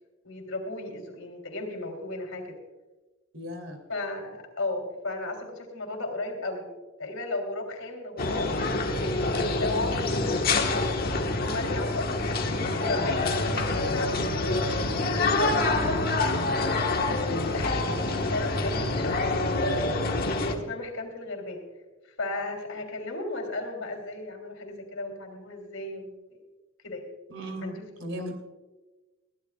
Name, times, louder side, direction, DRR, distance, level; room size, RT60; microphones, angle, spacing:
voice 1, 0.2-2.5 3.9-6.7 7.0-16.8 17.5-19.8 20.4-21.6 22.0-26.4 26.8-27.0 27.6-27.9, left 2 dB, 80° left, 3 dB, 3.4 m, -35 dB
voice 2, 3.3-3.8 17.8-18.3 27.3-28.3, equal, 65° right, 4 dB, 3.1 m, -37 dB
sound 1, 8.2-20.5, left 2 dB, 45° left, 1.4 m, -26 dB
22.0 x 16.0 x 2.4 m, 1.2 s
head